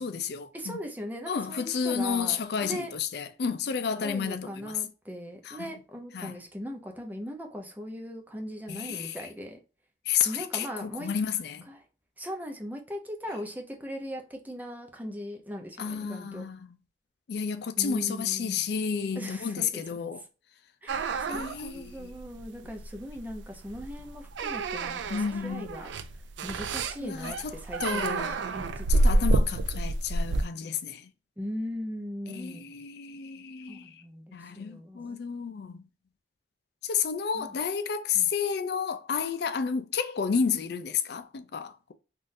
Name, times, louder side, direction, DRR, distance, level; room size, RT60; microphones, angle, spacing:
voice 1, 0.0-0.8 1.3-4.8 5.4-5.7 6.1-6.4 8.7-9.2 10.1-11.7 15.8-16.7 17.3-20.2 21.3-22.1 25.1-25.7 27.0-27.5 27.8-28.4 28.9-31.1 32.3-34.0 34.3-35.8 36.8-41.9, left 6 dB, 60° left, 0.4 m, -31 dB
voice 2, 0.5-2.9 4.0-9.6 10.2-11.1 11.7-11.8 12.2-16.4 17.8-18.6 19.1-19.8 20.8-25.0 25.4-25.9 26.4-29.2 31.4-32.7 33.7-35.2 37.3-37.6 38.1-38.3, equal, 10° right, 0.6 m, -39 dB
sound 1, 20.9-30.4, right 2 dB, 80° right, 0.4 m, -29 dB
3.7 x 2.5 x 2.6 m
head